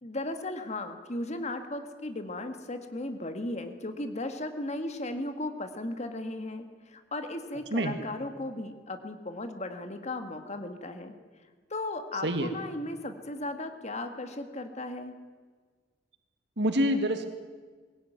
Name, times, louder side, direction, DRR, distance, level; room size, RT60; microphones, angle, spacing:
voice 1, 0.0-11.1 11.7-15.1, left 2 dB, 40° left, 7 dB, 1.8 m, -36 dB
voice 2, 16.6-17.3, equal, 70° right, 7 dB, 1.9 m, -26 dB
22.0 x 17.0 x 9.4 m, 1.5 s
head